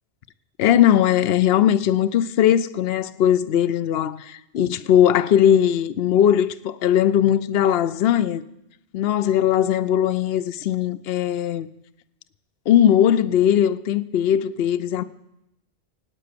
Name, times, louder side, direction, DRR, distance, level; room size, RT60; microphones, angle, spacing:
voice 1, 0.6-8.4 8.9-11.7 12.7-15.0, left 10 dB, 60° left, 0.8 m, -19 dB
18.0 x 9.1 x 6.8 m
omnidirectional pair, 1.2 m